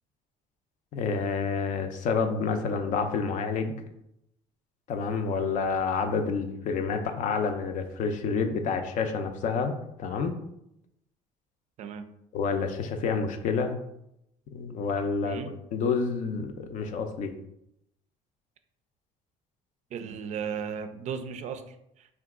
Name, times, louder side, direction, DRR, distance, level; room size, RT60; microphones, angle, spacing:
voice 1, 0.9-3.7 4.9-10.3 12.3-13.8 14.5-15.4 15.7-17.3, left 5 dB, 60° left, 6 dB, 0.5 m, -28 dB
voice 2, 19.9-22.1, right 6 dB, 55° right, 8 dB, 0.4 m, -36 dB
2.8 x 2.3 x 3.5 m, 0.79 s
cardioid pair, 100°, 15 cm